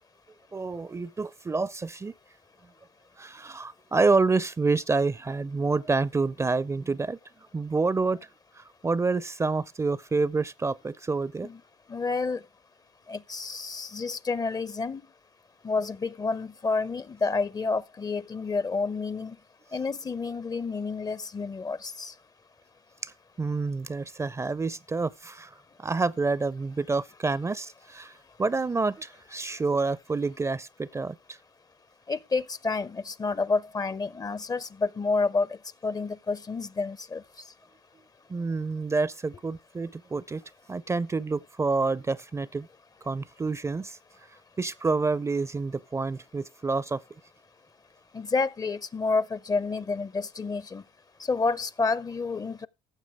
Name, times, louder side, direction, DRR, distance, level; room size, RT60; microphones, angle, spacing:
voice 1, 0.5-2.1 3.2-7.2 7.5-8.3 8.5-11.5 23.0-23.1 23.4-28.1 28.4-31.4 38.3-40.4 40.7-42.7 43.1-44.0 44.6-47.0, right 3 dB, 20° right, 0.5 m, -28 dB
voice 2, 11.9-12.4 13.1-15.0 15.6-19.4 19.7-22.1 32.1-35.6 35.8-37.2 48.1-50.8 51.2-52.7, left 4 dB, 25° left, 0.5 m, -29 dB
14.5 x 7.1 x 3.5 m
hypercardioid pair, 60°, 15 cm